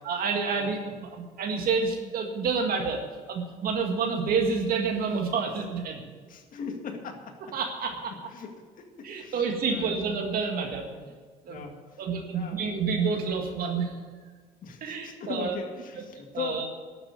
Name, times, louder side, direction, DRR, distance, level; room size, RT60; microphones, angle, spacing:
voice 1, 0.0-3.0 3.3-6.0 7.5-8.1 9.0-10.9 11.5-11.6 12.0-13.9 14.8-15.6 16.3-16.7, right 5 dB, 60° right, 3 dB, 1.9 m, -28 dB
voice 2, 6.3-7.6 8.3-8.5 9.0-9.4 9.7-10.0 10.9-11.1 11.5-12.0 12.3-12.6 14.6-16.7, left 5 dB, 55° left, 3 dB, 2.0 m, -39 dB
12.0 x 7.0 x 9.6 m, 1.5 s
cardioid pair, 110°, 17 cm